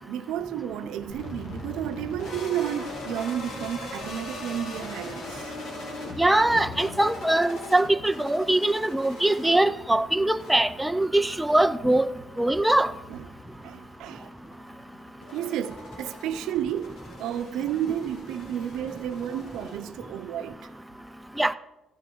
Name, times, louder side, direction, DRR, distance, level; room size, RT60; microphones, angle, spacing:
voice 1, 0.0-5.5 6.0-6.1 13.1-13.3 13.6-14.3 15.3-20.7, right 10 dB, 90° right, 0.6 m, -32 dB
sound 1, 1.1-20.3, left 2 dB, 60° left, 2.3 m, -41 dB
voice 2, 6.2-12.1 12.4-12.9 21.4-21.5, right 1 dB, 5° right, 0.3 m, -22 dB
15.0 x 6.2 x 4.5 m
cardioid pair, 175°, 0 cm